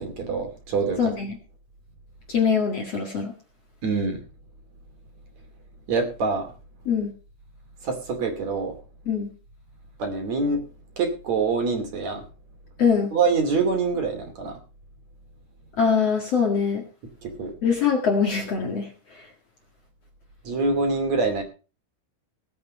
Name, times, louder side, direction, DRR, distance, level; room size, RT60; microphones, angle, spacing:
voice 1, 0.0-1.0 3.8-4.2 5.9-6.5 7.8-8.7 10.0-10.6 11.0-12.2 13.1-14.6 17.2-17.5 20.4-21.4, right 4 dB, 40° right, 5 dB, 3.2 m, -25 dB
voice 2, 1.0-1.4 2.3-3.3 6.8-7.1 9.0-9.3 12.8-13.1 15.8-16.9 17.6-19.3, left 6 dB, 55° left, 3 dB, 1.7 m, -23 dB
18.5 x 8.7 x 5.4 m, 0.35 s
omnidirectional pair, 5.8 m